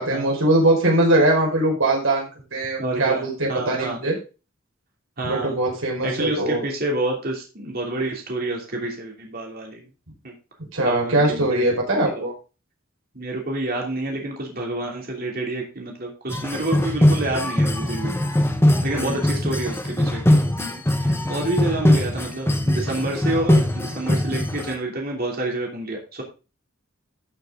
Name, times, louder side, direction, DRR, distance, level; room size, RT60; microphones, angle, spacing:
voice 1, 0.0-4.1 5.2-6.6 10.7-12.3 18.8-19.2, right 1 dB, 75° right, -1 dB, 5.0 m, -21 dB
voice 2, 2.8-3.2 3.5-4.0 5.2-5.6 6.0-9.9 10.2-10.3 10.8-11.6 12.1-12.2 13.1-18.1 18.8-26.2, right 2 dB, 45° right, 0 dB, 2.9 m, -28 dB
sound 1, 16.3-24.7, left 1 dB, 10° left, 1.1 m, -21 dB
13.5 x 6.6 x 3.8 m, 0.32 s
head